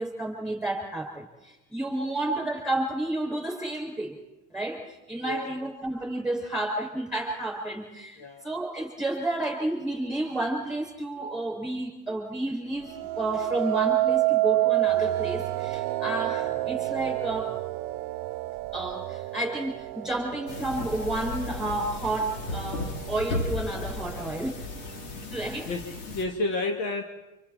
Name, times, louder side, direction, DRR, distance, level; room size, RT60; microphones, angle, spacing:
voice 1, 0.0-4.2 4.5-17.6 18.7-24.6 25.3-25.7, right 2 dB, ahead, 0 dB, 6.5 m, -31 dB
voice 2, 8.2-8.5 25.7-27.0, left 2 dB, 60° left, 4 dB, 2.3 m, -31 dB
sound 1, 12.9-22.0 22.6-23.0, right 16 dB, 55° right, 0.8 m, -28 dB
sound 2, 20.5-26.2, left 3 dB, 85° left, 3.9 m, -35 dB
29.0 x 27.5 x 4.4 m, 1.1 s
supercardioid pair, 135°, 44 cm